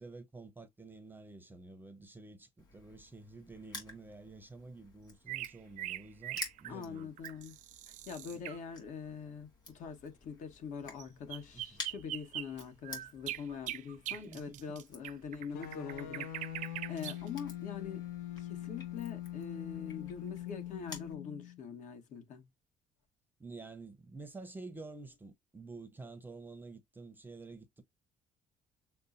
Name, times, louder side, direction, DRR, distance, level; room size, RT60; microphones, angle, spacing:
voice 1, 0.0-7.1 8.3-8.4 11.5-11.8 14.3-14.8 23.4-27.8, right 3 dB, 15° right, 0.6 m, -50 dB
Crushing, 2.6-21.1, left 3 dB, 30° left, 2.3 m, -52 dB
sound 1, 5.3-8.6 11.0-11.1 11.3-17.3, right 14 dB, 65° right, 0.5 m, -42 dB
voice 2, 6.7-7.5 7.9-18.0 18.4-22.5, left 6 dB, 60° left, 1.5 m, -44 dB
sound 2, 15.5-21.6, left 12 dB, 90° left, 1.0 m, -43 dB
6.5 x 2.2 x 2.5 m
cardioid pair, 140°, 14 cm